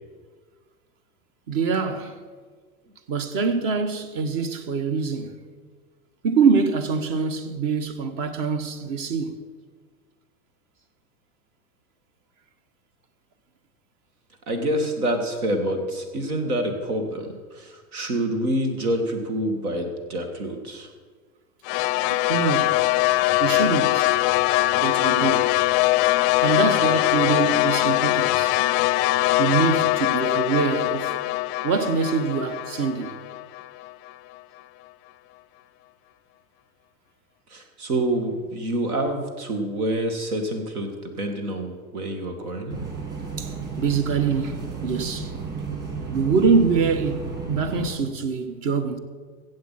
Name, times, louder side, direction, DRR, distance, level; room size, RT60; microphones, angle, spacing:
voice 1, 1.5-2.2 3.1-5.4 6.2-9.4 22.1-22.9 23.4-24.1 24.7-25.6 26.4-28.6 29.4-31.2 31.6-33.2 43.4-45.3 46.1-49.0, right 5 dB, 45° right, 1.4 m, -24 dB
voice 2, 14.5-20.9 37.5-40.9 41.2-42.8, right 1 dB, 75° right, 2.3 m, -27 dB
sound 1, 21.7-33.9, left 18 dB, 40° left, 0.5 m, -22 dB
sound 2, 42.7-47.9, right 5 dB, 20° right, 3.5 m, -33 dB
15.0 x 7.9 x 5.7 m
hypercardioid pair, 105°, 44 cm